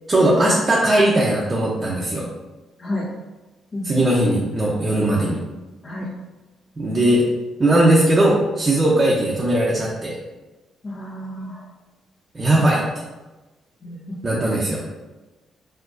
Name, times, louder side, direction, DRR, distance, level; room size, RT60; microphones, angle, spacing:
voice 1, 0.1-2.2 3.8-5.4 6.8-7.2 7.6-10.2 12.3-12.8 14.2-14.9, right 1 dB, 30° right, -5 dB, 0.8 m, -18 dB
voice 2, 10.8-11.6 13.8-14.2, left 1 dB, 40° left, -8 dB, 1.4 m, -30 dB
4.6 x 3.7 x 2.6 m, 1.1 s
cardioid pair, 90°, 0 cm